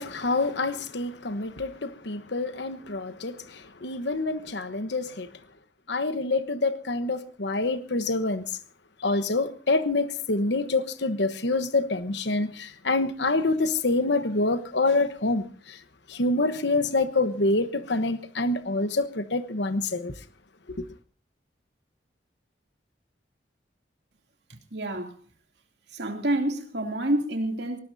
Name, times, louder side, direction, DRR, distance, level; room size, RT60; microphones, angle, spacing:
voice 1, 0.0-5.3 5.9-8.6 9.0-15.8 16.1-20.1 20.8-20.9, left 2 dB, 70° left, 1.1 m, -26 dB
voice 2, 24.7-25.1 25.9-27.8, right 1 dB, 70° right, 2.7 m, -28 dB
22.5 x 19.0 x 2.8 m
head